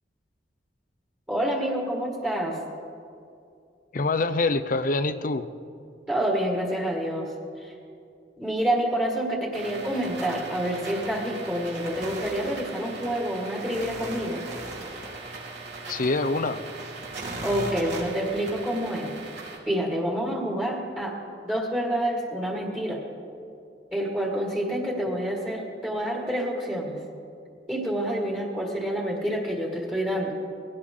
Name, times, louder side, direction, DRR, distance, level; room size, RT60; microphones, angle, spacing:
voice 1, 1.3-2.6 6.1-7.3 7.6-7.7 8.4-14.5 17.4-19.1 19.7-21.2 21.4-23.0 23.9-27.0 27.7-30.3, right 1 dB, 10° right, -2 dB, 1.8 m, -28 dB
voice 2, 3.9-5.5 15.9-16.6, left 3 dB, 45° left, 12 dB, 0.6 m, -25 dB
sound 1, 9.5-19.6, right 3 dB, 65° right, 3.7 m, -38 dB
21.0 x 17.5 x 3.7 m, 2.5 s
head